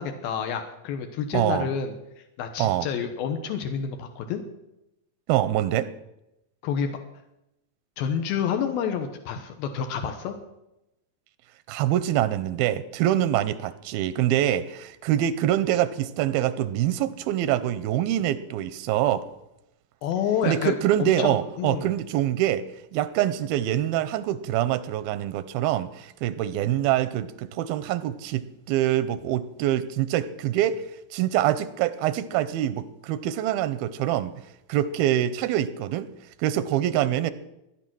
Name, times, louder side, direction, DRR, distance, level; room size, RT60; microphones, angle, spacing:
voice 1, 0.0-1.9 2.4-4.4 6.6-7.0 8.0-10.4 20.0-21.9, left 7 dB, 90° left, 6 dB, 3.0 m, -29 dB
voice 2, 1.3-1.7 2.6-2.9 5.3-5.9 11.7-19.3 20.4-22.7 22.9-30.8 31.1-34.3 34.7-36.1 36.4-37.3, right 12 dB, 90° right, 14 dB, 2.6 m, -25 dB
17.5 x 10.0 x 6.2 m, 0.89 s
omnidirectional pair, 4.2 m